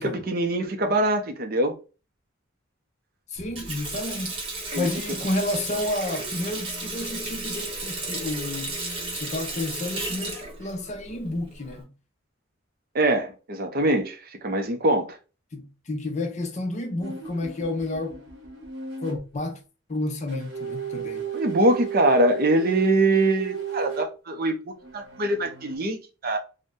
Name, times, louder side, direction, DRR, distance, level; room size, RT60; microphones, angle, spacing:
voice 1, 0.0-1.7 4.7-4.9 12.9-15.2 21.3-24.5 24.9-26.0 26.2-26.4, right 1 dB, 45° right, 0.5 m, -23 dB
voice 2, 3.3-4.4 4.8-8.7 9.1-11.9 15.5-18.2 19.0-19.6 19.9-21.3, left 2 dB, 35° left, 0.5 m, -30 dB
Water tap faucet, 3.4-11.8, right 2 dB, 25° right, 1.0 m, -34 dB
sound 1, 17.0-19.2 20.3-24.1 24.8-25.8, right 7 dB, 65° right, 0.9 m, -34 dB
2.6 x 2.1 x 3.5 m
head